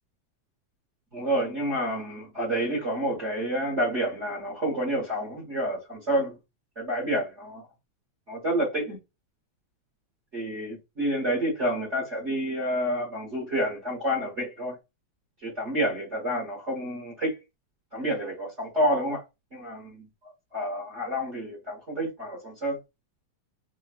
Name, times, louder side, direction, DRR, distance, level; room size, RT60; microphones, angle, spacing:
voice 1, 1.1-6.4 6.8-7.6 8.3-9.0 10.3-14.8 15.4-17.4 17.9-19.2 19.5-20.0 20.5-22.8, equal, 45° right, 0.9 m, -29 dB
5.0 x 2.3 x 2.4 m
omnidirectional pair, 3.4 m